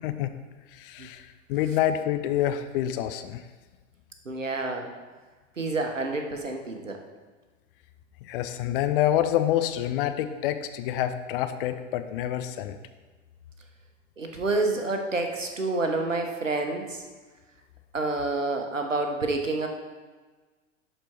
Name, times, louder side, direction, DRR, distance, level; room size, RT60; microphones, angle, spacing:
voice 1, 0.8-3.4 8.3-12.8, left 11 dB, 45° left, 9 dB, 0.7 m, -27 dB
voice 2, 4.2-4.9 5.6-7.0 14.2-17.0 17.9-19.7, right 2 dB, 85° right, 4 dB, 1.1 m, -28 dB
11.5 x 4.5 x 4.5 m, 1.3 s
figure-of-eight pair, 90°, 37 cm